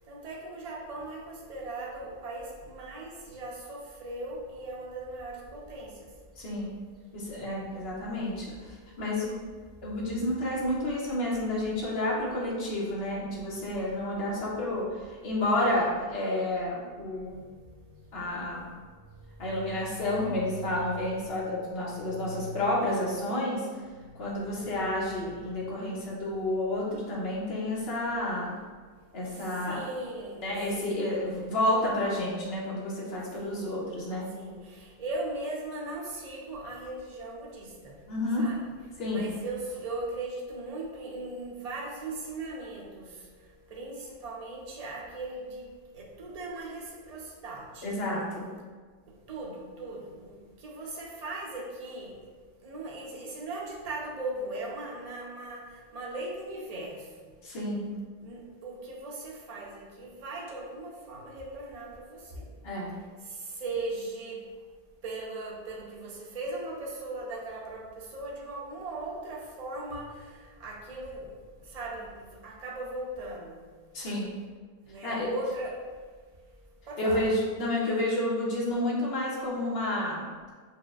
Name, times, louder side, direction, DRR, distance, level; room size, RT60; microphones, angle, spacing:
voice 1, 0.1-5.9 20.4-20.7 22.0-22.6 24.3-24.4 29.7-31.2 33.4-33.7 34.3-37.9 38.4-38.6 39.1-43.1 43.7-44.0 44.2-45.6 45.9-47.9 49.3-50.3 50.6-52.1 52.6-55.6 55.9-56.9 58.2-62.4 63.6-64.4 65.0-67.9 68.1-70.1 70.6-71.3 71.7-73.6 74.9-75.8 76.9-77.2, right 2 dB, 45° right, -3 dB, 0.7 m, -38 dB
voice 2, 6.4-6.7 7.1-9.5 9.8-17.4 18.1-18.8 19.4-23.7 24.1-28.5 29.1-29.8 30.4-34.3 38.1-38.5 39.0-39.4 47.8-48.5 57.4-57.9 62.6-62.9 73.9-74.3 75.0-75.3 77.0-80.3, left 1 dB, 80° left, -5 dB, 1.1 m, -30 dB
6.1 x 2.1 x 2.4 m, 1.5 s
omnidirectional pair, 1.0 m